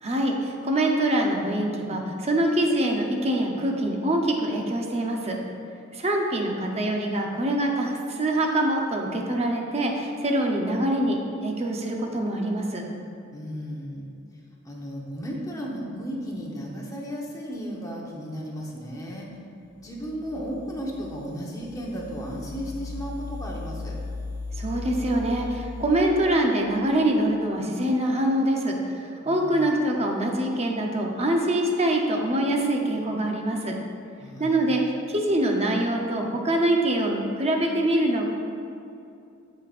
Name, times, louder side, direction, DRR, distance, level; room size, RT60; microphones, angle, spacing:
voice 1, 0.0-5.4 5.9-12.8 24.6-33.8 34.4-34.8 35.1-38.3, right 1 dB, 30° right, 1 dB, 0.8 m, -24 dB
voice 2, 13.3-14.1 14.6-19.3 19.8-23.9 29.2-29.6 34.2-34.7, equal, 15° left, -3 dB, 1.0 m, -34 dB
sound 1, 19.8-27.3, left 3 dB, 80° left, 0.4 m, -38 dB
12.5 x 5.2 x 2.5 m, 2.6 s
head